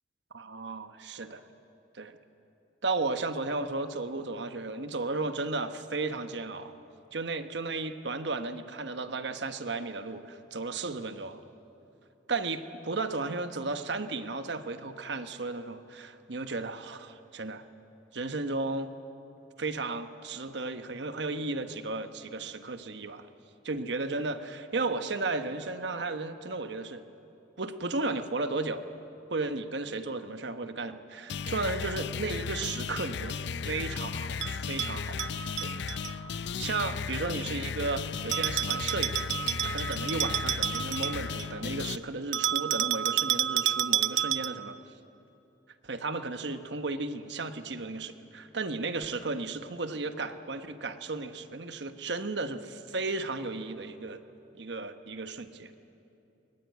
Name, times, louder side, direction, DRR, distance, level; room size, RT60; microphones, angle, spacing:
voice 1, 0.3-1.4 1.9-2.1 2.8-6.7 7.1-11.4 12.3-17.6 18.1-18.9 19.6-23.3 23.6-27.0 27.6-28.9 29.3-35.2 35.6-35.7 36.6-39.2 39.6-44.8 45.8-54.2 54.5-55.7, right 3 dB, 70° right, 9 dB, 1.1 m, -34 dB
sound 1, 31.3-42.0, left 6 dB, 65° left, 0.5 m, -35 dB
Bell, 34.4-36.1 38.3-41.6 42.3-44.7, right 12 dB, 90° right, 0.5 m, -30 dB
22.0 x 18.0 x 9.4 m, 2.9 s
head